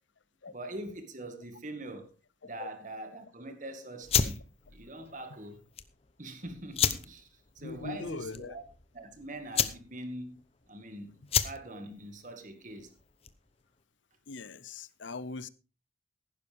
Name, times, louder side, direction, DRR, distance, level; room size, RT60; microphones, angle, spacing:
voice 1, 0.5-2.1 2.4-4.4 4.7-5.6 6.2-7.3 7.6-8.6 8.9-10.4 10.7-12.9, right 1 dB, 45° right, 2.0 m, -43 dB
sound 1, 4.0-13.5, left 8 dB, 35° left, 0.8 m, -33 dB
voice 2, 7.6-8.5 14.3-15.5, left 3 dB, 85° left, 0.8 m, -40 dB
15.0 x 11.5 x 3.6 m
head